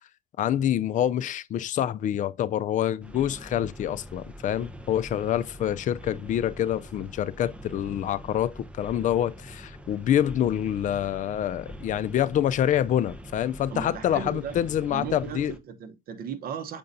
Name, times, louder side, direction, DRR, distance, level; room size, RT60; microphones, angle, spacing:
voice 1, 0.4-15.5, left 11 dB, 50° left, 0.5 m, -26 dB
sound 1, 3.0-15.6, equal, 5° right, 0.9 m, -44 dB
voice 2, 13.7-14.6 14.9-16.8, right 6 dB, 60° right, 1.0 m, -36 dB
6.8 x 5.2 x 2.7 m
cardioid pair, 110°, 17 cm